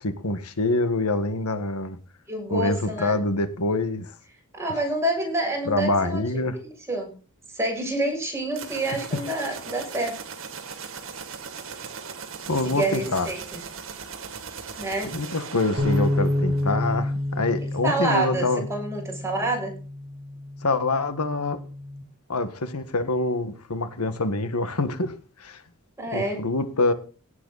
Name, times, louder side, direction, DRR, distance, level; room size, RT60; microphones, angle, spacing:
voice 1, 0.0-2.0 2.5-4.1 5.7-6.6 12.5-13.3 15.1-18.7 20.6-21.6 22.3-25.6 26.1-26.9, left 2 dB, 90° left, 1.6 m, -25 dB
voice 2, 2.3-3.2 4.5-6.2 6.6-7.1 7.5-10.2 12.6-13.4 14.8-15.1 17.8-19.7 26.0-26.4, right 2 dB, 10° right, 6.9 m, -27 dB
sound 1, 8.5-17.1, right 5 dB, 60° right, 2.2 m, -38 dB
sound 2, 15.8-22.0, left 1 dB, 40° right, 3.3 m, -29 dB
17.5 x 8.1 x 4.1 m
head